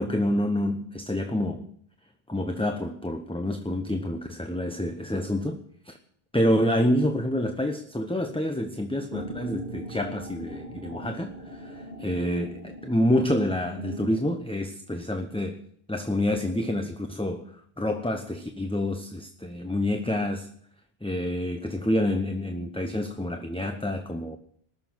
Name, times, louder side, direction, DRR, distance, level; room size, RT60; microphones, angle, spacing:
voice 1, 0.0-1.7 2.3-6.0 6.3-15.6 15.9-20.5 21.0-24.4, left 1 dB, 5° left, 5 dB, 0.8 m, -28 dB
sound 1, 9.1-14.2, right 1 dB, 75° right, 2.4 m, -40 dB
20.0 x 6.9 x 7.8 m, 0.62 s
omnidirectional pair, 1.0 m